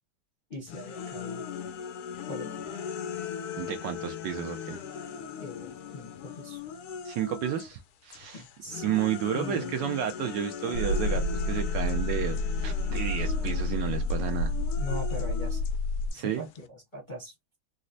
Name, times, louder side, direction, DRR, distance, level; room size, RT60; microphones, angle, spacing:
voice 1, 0.5-1.5 2.3-2.5 5.4-6.6 8.3-8.8 9.3-9.7 11.1-11.3 14.8-15.6 16.1-17.6, left 1 dB, 40° left, 0.7 m, -41 dB
sound 1, 0.7-7.8 8.1-16.7, left 7 dB, 85° left, 0.8 m, -39 dB
voice 2, 3.6-4.8 7.0-8.4 8.8-14.6 16.1-16.5, right 10 dB, 75° right, 1.1 m, -32 dB
sound 2, 10.7-16.1, left 2 dB, 90° right, 1.8 m, -29 dB
4.0 x 2.0 x 2.5 m
omnidirectional pair, 2.2 m